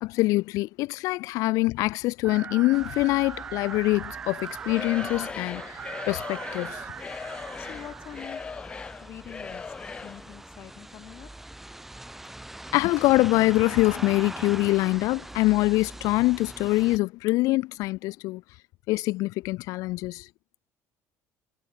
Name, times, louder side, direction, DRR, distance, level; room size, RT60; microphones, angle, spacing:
voice 1, 0.0-5.8 6.1-6.8 12.7-18.4 18.9-20.3, left 20 dB, 65° left, 0.4 m, -24 dB
sound 1, 2.2-8.4, right 7 dB, 25° right, 0.6 m, -40 dB
sound 2, 2.7-17.0, right 1 dB, 5° right, 1.4 m, -43 dB
Singing / Crowd, 4.6-10.3, left 5 dB, 15° left, 1.2 m, -39 dB
voice 2, 7.3-8.7 9.0-11.5, left 11 dB, 40° left, 5.9 m, -45 dB
cardioid pair, 175°, 6 cm